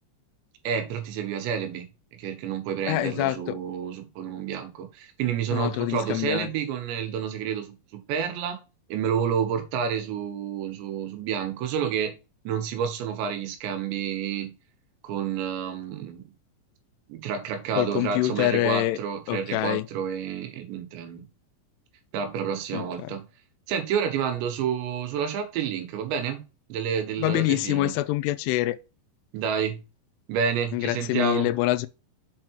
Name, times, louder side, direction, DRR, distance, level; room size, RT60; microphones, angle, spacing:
voice 1, 0.6-1.9 2.2-7.7 8.1-8.6 8.9-12.1 12.4-14.5 15.0-16.3 17.1-21.2 22.1-23.2 23.7-26.4 26.7-27.9 29.3-29.8 30.3-31.5, right 7 dB, 80° right, 3.4 m, -29 dB
voice 2, 2.9-3.6 5.5-6.5 17.8-19.0 19.3-19.9 22.7-23.1 27.2-28.8 30.7-31.9, left 17 dB, 85° left, 2.4 m, -26 dB
7.5 x 4.5 x 4.5 m
omnidirectional pair, 5.1 m